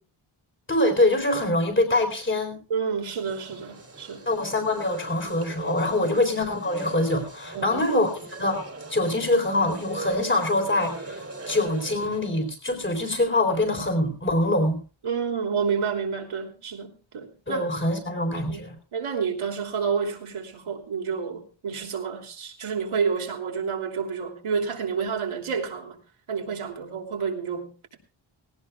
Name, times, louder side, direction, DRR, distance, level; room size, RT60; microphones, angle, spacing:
voice 1, 0.7-2.6 4.3-10.9 11.5-14.8 17.5-18.7, left 1 dB, 25° left, 5 dB, 4.0 m, -24 dB
voice 2, 2.7-4.3 6.0-6.1 7.5-7.8 15.0-17.6 18.4-18.6 18.9-26.0 26.3-28.0, right 6 dB, 75° right, 2 dB, 3.2 m, -29 dB
paisaje sonoro ambiente del gym, 3.2-12.3, right 3 dB, 30° right, 2.8 m, -40 dB
18.5 x 18.0 x 2.4 m, 0.35 s
wide cardioid pair, 150°, 49 cm